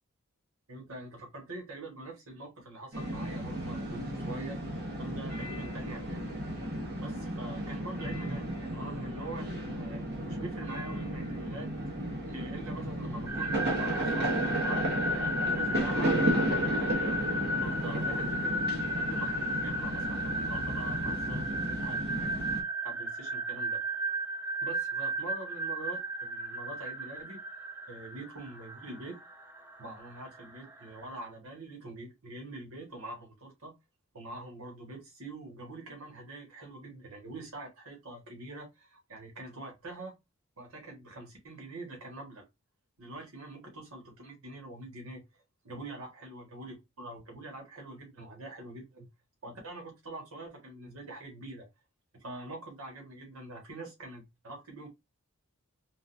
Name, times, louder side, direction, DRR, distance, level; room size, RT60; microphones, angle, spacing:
voice 1, 0.7-6.4 7.0-11.8 12.3-18.6 18.9-23.8 24.6-27.4 27.9-29.2 29.8-33.7 34.1-40.2 40.6-42.5 43.0-49.1 49.4-51.7 52.1-54.9, right 2 dB, 75° right, 1.5 m, -45 dB
sound 1, 2.9-22.6, right 1 dB, 45° right, 1.0 m, -33 dB
sound 2, 13.3-31.2, equal, 10° right, 0.4 m, -34 dB
3.9 x 2.3 x 2.6 m
head